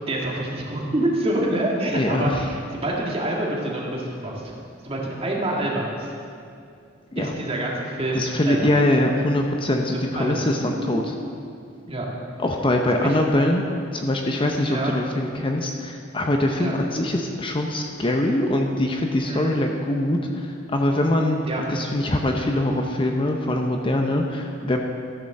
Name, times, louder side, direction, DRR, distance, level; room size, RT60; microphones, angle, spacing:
voice 1, 0.1-4.5 4.8-6.1 7.2-8.7 9.9-11.1 11.9-12.1 12.9-13.2 14.7-15.0 16.6-16.7 19.2-19.6 21.4-21.6, right 1 dB, 30° right, -3 dB, 2.0 m, -27 dB
voice 2, 1.9-2.5 7.1-7.3 8.1-11.1 12.4-13.6 13.9-20.5 20.7-21.4 21.7-24.8, left 1 dB, 25° left, 2 dB, 0.7 m, -23 dB
14.0 x 6.8 x 6.5 m, 2.4 s
head